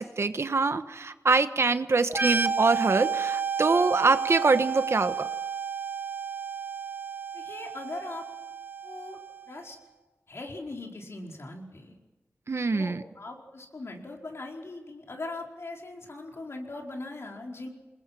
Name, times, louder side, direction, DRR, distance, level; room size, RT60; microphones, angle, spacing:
voice 1, 0.0-5.3 12.5-13.0, right 3 dB, 65° right, 10 dB, 1.2 m, -24 dB
sound 1, 2.1-9.6, right 6 dB, 40° right, 1.1 m, -32 dB
voice 2, 7.3-8.2 8.8-9.2 9.5-9.8 10.3-12.0 12.7-17.7, left 2 dB, 65° left, 1 dB, 4.7 m, -40 dB
28.0 x 21.0 x 6.1 m, 1.2 s
wide cardioid pair, 75°, 5 cm